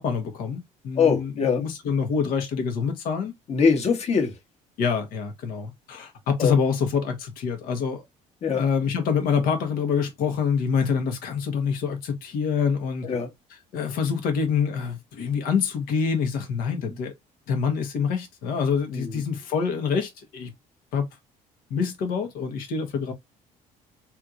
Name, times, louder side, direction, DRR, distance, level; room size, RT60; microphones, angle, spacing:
voice 1, 0.0-3.3 4.8-8.0 8.5-13.1 13.7-17.1 17.5-20.5 20.9-21.0 21.7-23.1, left 6 dB, 75° left, 1.3 m, -26 dB
voice 2, 0.9-1.6 3.5-4.4 6.4-6.5 8.4-8.6 13.0-13.3 18.9-19.2, left 5 dB, 45° left, 1.4 m, -22 dB
3.5 x 3.0 x 2.5 m
cardioid pair, 100°, 15 cm